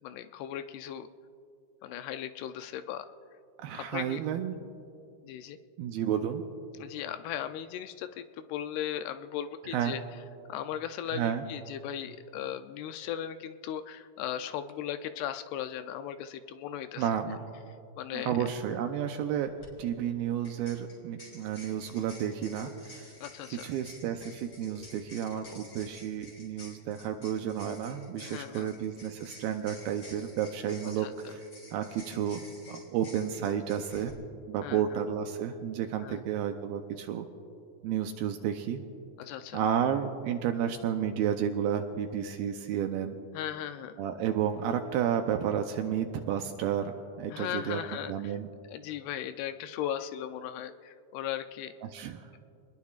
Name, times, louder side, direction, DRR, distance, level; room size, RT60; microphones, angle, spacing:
voice 1, 0.0-1.1 1.8-3.1 3.7-4.2 5.2-5.6 6.8-10.0 10.5-17.1 18.0-18.3 23.2-23.7 28.2-28.7 30.8-31.1 34.6-34.8 36.0-36.2 39.2-39.6 43.3-44.0 47.3-48.4 48.7-51.7, left 10 dB, 80° left, 9 dB, 2.5 m, -37 dB
voice 2, 3.6-4.6 5.8-6.4 9.7-10.0 11.1-11.4 17.0-17.4 18.1-19.5 19.8-23.1 23.5-31.4 31.7-34.1 34.5-37.3 37.8-38.8 39.5-43.2 44.0-48.5 51.8-52.4, right 9 dB, 80° right, 6 dB, 2.3 m, -31 dB
sound 1, 19.6-19.7 20.4-34.1, left 2 dB, 25° left, 3.8 m, -51 dB
27.5 x 20.5 x 2.4 m, 2.5 s
omnidirectional pair, 4.8 m